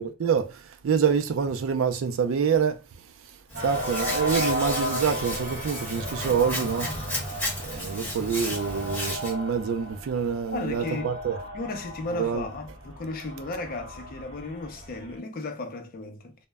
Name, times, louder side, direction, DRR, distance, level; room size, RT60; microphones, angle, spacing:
voice 1, 0.0-2.8 3.6-6.9 7.6-11.4 12.1-12.4, right 6 dB, 65° right, 0.4 m, -26 dB
Hands, 3.5-9.3, equal, 10° left, 0.9 m, -33 dB
sound 1, 3.5-15.2, equal, 50° right, 0.8 m, -35 dB
voice 2, 7.7-8.1 10.5-11.1 11.5-16.4, left 2 dB, 45° left, 0.5 m, -35 dB
2.1 x 2.0 x 3.4 m
head